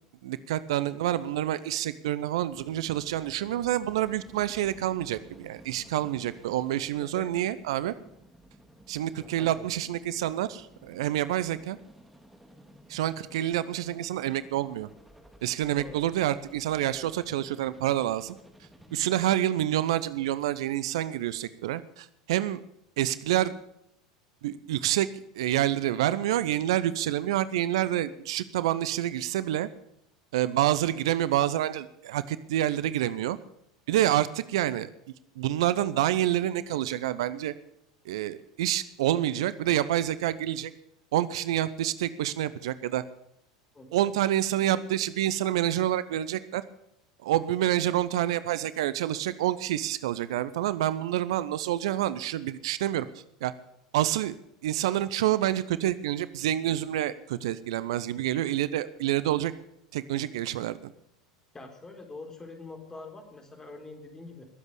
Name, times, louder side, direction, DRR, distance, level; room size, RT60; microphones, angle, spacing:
voice 1, 0.2-7.9 8.9-11.8 12.9-14.9 15.4-18.4 18.9-22.6 23.0-23.5 24.4-25.1 25.3-29.7 30.3-33.4 33.9-34.9 35.4-37.5 38.1-40.7 41.1-43.0 43.9-46.6 47.2-53.5 53.9-54.4 54.6-59.5 59.9-60.8, right 13 dB, 65° right, 16 dB, 0.7 m, -28 dB
sound 1, 2.5-19.0, equal, 5° right, 2.5 m, -55 dB
voice 2, 7.0-7.5 9.1-9.6 15.8-16.0 16.9-17.1 43.7-44.0 61.5-64.5, left 3 dB, 15° left, 4 dB, 4.1 m, -45 dB
21.0 x 8.1 x 6.9 m, 0.76 s
figure-of-eight pair, 80°, 3 cm